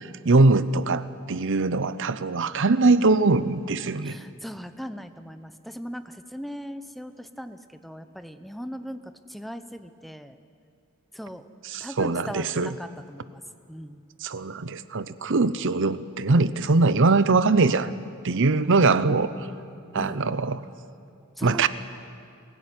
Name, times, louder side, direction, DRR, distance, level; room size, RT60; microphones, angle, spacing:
voice 1, 0.0-4.2 11.6-12.7 14.2-17.9 18.2-19.5 19.9-20.6 21.4-21.7, right 3 dB, 60° right, 14 dB, 0.8 m, -22 dB
voice 2, 4.0-10.4 11.1-11.5 11.8-13.4 13.7-14.0 19.9-20.2 21.4-21.7, equal, ahead, 9 dB, 0.7 m, -39 dB
22.5 x 15.5 x 9.6 m, 2.4 s
head